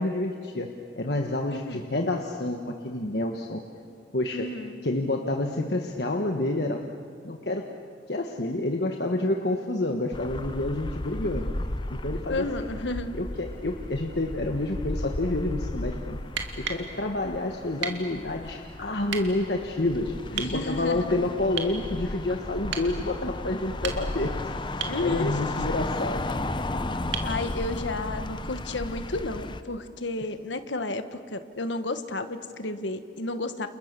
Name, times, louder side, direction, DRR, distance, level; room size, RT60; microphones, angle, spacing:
voice 1, 0.0-3.6 4.1-4.5 4.8-6.9 7.2-7.7 8.1-11.5 11.9-12.5 13.2-16.2 16.6-24.7 25.0-26.3, left 2 dB, 60° left, 3 dB, 1.4 m, -29 dB
voice 2, 1.5-1.8 4.3-4.8 12.3-13.1 20.3-21.2 24.9-25.4 27.2-33.7, left 2 dB, 80° left, 9 dB, 1.4 m, -32 dB
sound 1, 10.1-29.6, left 1 dB, 25° left, 0.8 m, -34 dB
sound 2, 16.2-16.9 17.8-18.0 19.1-19.2 20.4-20.6 21.6-21.8 22.7-22.9 23.6-24.3 24.8-25.0 27.1-27.4 29.2-29.3, right 6 dB, 80° right, 2.4 m, -33 dB
30.0 x 29.0 x 6.9 m, 2.2 s
head